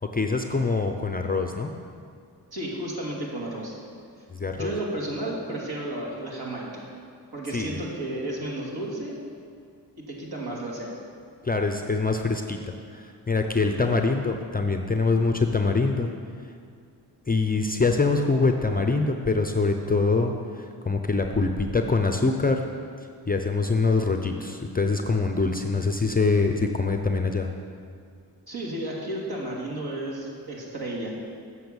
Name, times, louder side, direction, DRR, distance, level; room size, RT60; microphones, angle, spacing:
voice 1, 0.0-1.7 4.3-4.7 7.5-7.8 11.4-16.1 17.3-22.6 23.3-27.5, left 3 dB, 20° left, 4 dB, 0.6 m, -24 dB
voice 2, 2.5-3.7 4.5-6.8 7.3-9.1 10.0-10.9 28.5-31.1, right 1 dB, 55° right, -3 dB, 2.5 m, -32 dB
8.0 x 5.7 x 7.0 m, 2.2 s
cardioid pair, 55°, 45 cm